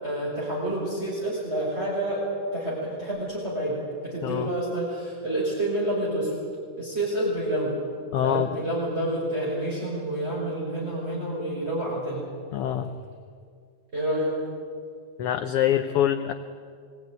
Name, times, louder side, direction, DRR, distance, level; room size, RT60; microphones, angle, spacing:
voice 1, 0.0-2.3 2.5-6.3 6.8-7.8 8.2-12.2 13.9-14.4, right 1 dB, 20° right, -6 dB, 6.0 m, -28 dB
voice 2, 8.1-8.5 12.5-12.9 15.2-16.3, left 10 dB, 65° left, 7 dB, 1.5 m, -24 dB
26.0 x 19.0 x 9.6 m, 2.2 s
omnidirectional pair, 3.3 m